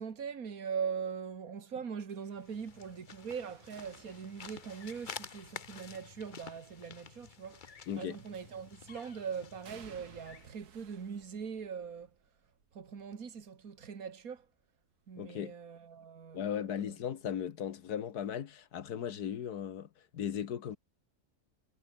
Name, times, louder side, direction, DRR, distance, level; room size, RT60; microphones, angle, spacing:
voice 1, 0.0-12.1 12.7-14.5 15.1-17.0, right 6 dB, 65° right, 2.3 m, -41 dB
sound 1, 2.1-6.1 8.3-8.9 9.6-15.5 15.8-16.2 17.5-17.6, right 7 dB, 85° right, 2.1 m, -61 dB
sound 2, 2.3-10.6, left 6 dB, 40° left, 0.9 m, -50 dB
voice 2, 7.9-8.2 15.2-15.5 16.3-20.8, left 9 dB, 85° left, 1.8 m, -37 dB
omnidirectional pair, 1.6 m